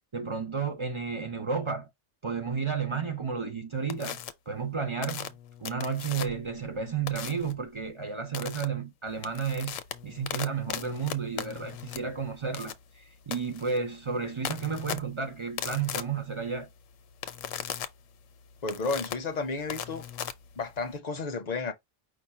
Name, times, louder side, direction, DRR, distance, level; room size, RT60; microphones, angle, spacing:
voice 1, 0.1-1.9 2.2-16.7, right 5 dB, 40° right, 0.4 m, -32 dB
sound 1, 3.9-4.3 5.0-6.5 7.1-7.5 8.3-8.6 9.1-21.0, left 10 dB, 80° left, 1.0 m, -38 dB
voice 2, 18.6-20.0 20.6-21.7, left 4 dB, 40° left, 0.6 m, -32 dB
5.1 x 2.1 x 4.2 m
omnidirectional pair, 1.3 m